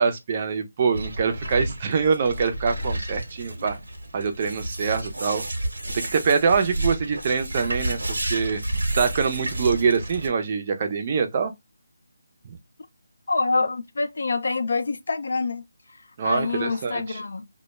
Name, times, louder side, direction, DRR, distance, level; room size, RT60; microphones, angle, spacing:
voice 1, 0.0-3.8 4.1-5.4 5.9-8.0 8.3-8.6 9.0-11.5 16.2-17.2, right 5 dB, 30° right, 0.4 m, -24 dB
sound 1, 0.9-10.3, right 1 dB, 85° right, 0.8 m, -31 dB
voice 2, 13.3-15.6 16.2-17.5, left 3 dB, 65° left, 0.4 m, -26 dB
2.1 x 2.0 x 3.0 m
figure-of-eight pair, 170°, 0 cm